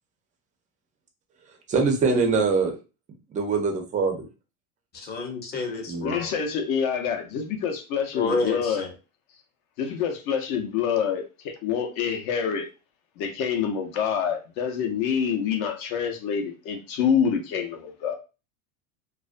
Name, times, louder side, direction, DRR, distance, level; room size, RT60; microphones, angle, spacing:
voice 1, 1.7-2.7 3.3-4.3 5.9-6.2, right 4 dB, 20° right, 3 dB, 0.4 m, -23 dB
voice 2, 4.9-6.3 8.1-8.9, left 3 dB, 25° left, 2 dB, 0.6 m, -29 dB
voice 3, 6.0-8.9 9.8-12.7 13.2-18.1, left 7 dB, 60° left, 5 dB, 0.7 m, -26 dB
2.4 x 2.2 x 2.4 m, 0.32 s
supercardioid pair, 130°, 43 cm